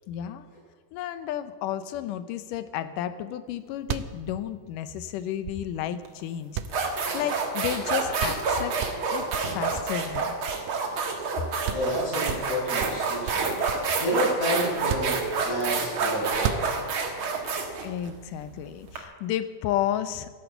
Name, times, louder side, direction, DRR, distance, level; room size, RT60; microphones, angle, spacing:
voice 1, 0.1-0.5 0.9-8.8 9.1-10.3 17.8-20.3, left 11 dB, 85° left, 13 dB, 2.4 m, -32 dB
sound 1, 3.5-3.6 3.8-6.0 6.5-7.6 7.9-8.0 8.2-8.5 8.8-11.0 11.3-11.4 11.7-12.0 12.3-14.0 14.7-15.7 16.3-17.1, right 9 dB, 85° right, 2.3 m, -34 dB
sound 2, 6.1-6.2 6.7-19.0, right 4 dB, 45° right, 2.2 m, -28 dB
voice 2, 11.7-13.6 14.0-15.2 15.4-16.6, equal, 60° left, -4 dB, 7.3 m, -29 dB
13.0 x 11.5 x 8.2 m, 1.5 s
omnidirectional pair, 3.7 m